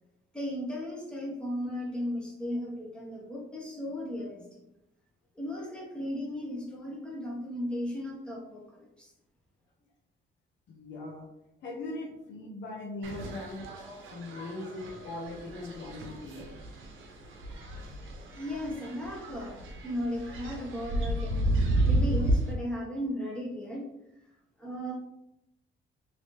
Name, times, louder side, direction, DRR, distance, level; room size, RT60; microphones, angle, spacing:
voice 1, 0.3-4.6 5.3-9.1 18.3-23.9 24.6-24.9, equal, 5° left, -4 dB, 1.2 m, -36 dB
voice 2, 10.7-11.3 11.6-13.7 14.1-16.5, left 2 dB, 70° left, 0 dB, 0.7 m, -40 dB
sound 1, 13.0-22.5, right 1 dB, 75° right, 0.8 m, -32 dB
3.0 x 3.0 x 3.1 m, 0.85 s
cardioid pair, 90°, 20 cm